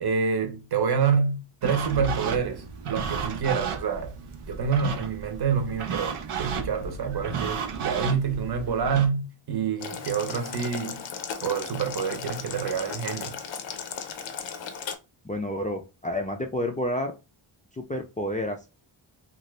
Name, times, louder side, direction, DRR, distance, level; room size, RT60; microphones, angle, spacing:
voice 1, 0.0-4.2 4.5-11.1 11.4-13.4, right 6 dB, 50° right, 0.8 m, -27 dB
sound 1, 1.6-9.1, right 6 dB, 85° right, 0.7 m, -33 dB
Boiling, 9.8-14.9, left 7 dB, 65° left, 0.6 m, -36 dB
voice 2, 15.2-17.1 17.7-18.7, left 1 dB, 15° left, 0.4 m, -30 dB
2.7 x 2.5 x 3.1 m
wide cardioid pair, 95°, 49 cm